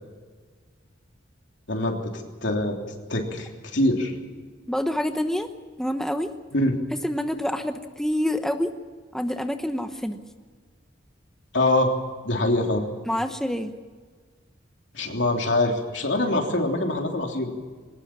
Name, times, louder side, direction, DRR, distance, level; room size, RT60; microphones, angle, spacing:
voice 1, 2.4-2.8 3.1-4.1 6.5-6.8 11.5-11.9 12.2-12.8 14.9-17.5, left 1 dB, 70° left, 2 dB, 3.3 m, -24 dB
voice 2, 4.7-5.5 5.8-6.3 6.9-8.7 9.1-10.2 13.1-13.7, left 1 dB, 5° left, 6 dB, 0.9 m, -27 dB
21.5 x 19.0 x 7.4 m, 1.5 s
head